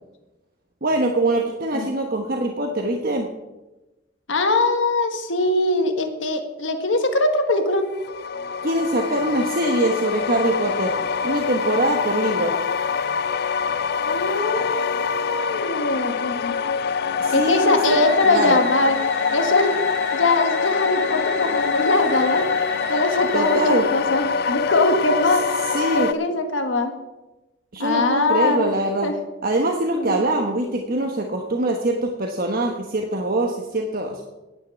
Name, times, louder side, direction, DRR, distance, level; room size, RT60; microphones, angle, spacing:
voice 1, 0.8-3.3 8.6-10.9 11.2-12.5 17.2-18.6 23.3-23.9 25.7-26.1 27.7-29.1 29.4-34.2, right 1 dB, 50° right, 2 dB, 1.2 m, -23 dB
voice 2, 4.3-7.9 14.1-16.5 17.3-19.0 19.3-19.8 20.1-22.5 22.9-25.5 25.9-26.9 27.8-28.7 29.0-29.1 29.9-30.2, left 2 dB, 85° left, 6 dB, 1.5 m, -22 dB
sound 1, 7.9-26.1, left 6 dB, 55° left, 0.4 m, -25 dB
sound 2, 17.9-23.9, equal, 5° left, 1.9 m, -33 dB
10.5 x 8.7 x 7.6 m, 1.1 s
head